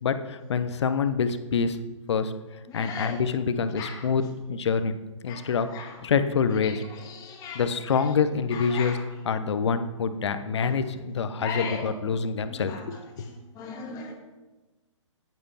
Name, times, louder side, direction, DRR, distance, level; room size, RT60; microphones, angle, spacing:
voice 1, 0.0-1.8 2.1-2.3 2.7-4.9 5.2-5.7 6.0-6.8 7.5-9.0 9.2-13.3, left 5 dB, 60° left, 11 dB, 0.9 m, -26 dB
voice 2, 2.7-3.2 3.8-4.0 5.3-5.9 6.6-7.7 8.5-9.0 10.6-10.7 11.4-11.9 12.5-12.8 13.6-14.1, left 5 dB, 20° left, 2 dB, 2.0 m, -37 dB
9.9 x 9.6 x 5.6 m, 1.2 s
figure-of-eight pair, 130°, 16 cm